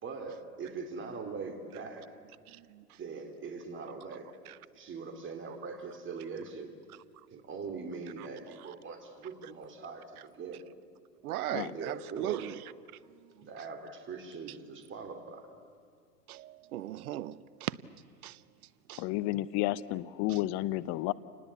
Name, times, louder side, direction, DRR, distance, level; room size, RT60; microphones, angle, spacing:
voice 1, 0.0-2.2 3.0-4.3 4.7-6.7 7.3-10.6 11.5-12.5 13.4-15.5, right 4 dB, 25° right, 2.8 m, -41 dB
voice 2, 2.5-2.8 11.2-12.5 16.3-17.8 18.2-18.4 18.9-19.0 20.3-20.4, right 14 dB, 65° right, 0.9 m, -37 dB
voice 3, 19.0-21.1, left 16 dB, 35° left, 0.7 m, -31 dB
28.5 x 19.5 x 8.5 m
hypercardioid pair, 105°, 48 cm